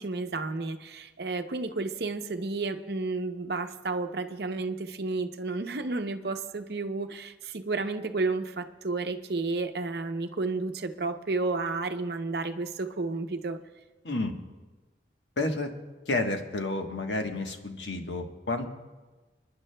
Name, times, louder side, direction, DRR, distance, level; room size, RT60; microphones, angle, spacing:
voice 1, 0.0-13.6, right 3 dB, 60° right, 7 dB, 0.7 m, -31 dB
voice 2, 15.4-15.7 16.1-18.7, left 2 dB, 80° left, 4 dB, 1.2 m, -30 dB
29.5 x 10.5 x 2.2 m, 1.2 s
head